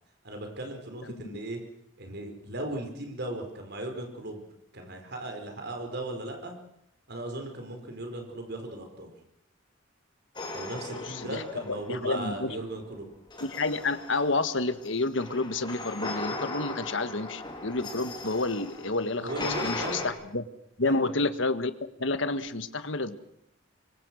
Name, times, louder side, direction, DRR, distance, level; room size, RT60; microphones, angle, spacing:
voice 1, 0.2-1.6 2.0-4.4 4.7-6.6 7.1-9.1 10.5-13.1 19.2-20.0 20.8-21.1, right 1 dB, 55° right, 4 dB, 5.1 m, -37 dB
voice 2, 1.1-1.4 10.9-12.6 13.4-20.4 20.8-21.7 22.0-23.2, left 3 dB, 65° left, 12 dB, 1.5 m, -30 dB
sound 1, 10.4-12.4 13.3-20.1, left 2 dB, 25° left, 4.0 m, -38 dB
25.5 x 24.0 x 6.4 m, 0.74 s
head